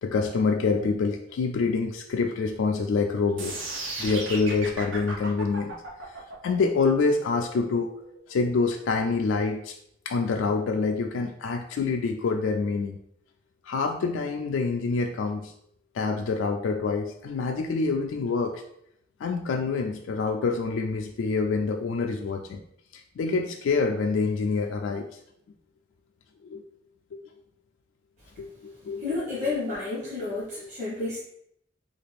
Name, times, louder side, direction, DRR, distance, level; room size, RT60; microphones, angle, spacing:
voice 1, 0.0-3.7 4.0-5.7 6.1-7.9 8.3-9.8 10.1-13.0 13.6-15.5 15.9-18.6 19.2-22.6 22.9-25.2 26.4-26.6 27.1-27.2 28.4-29.0 30.6-30.7, left 4 dB, 90° left, 3 dB, 0.3 m, -26 dB
sound 1, 3.4-9.4, right 2 dB, 80° right, 0.7 m, -36 dB
voice 2, 29.0-31.2, left 3 dB, 40° right, -9 dB, 1.0 m, -30 dB
3.4 x 2.4 x 3.3 m, 0.72 s
head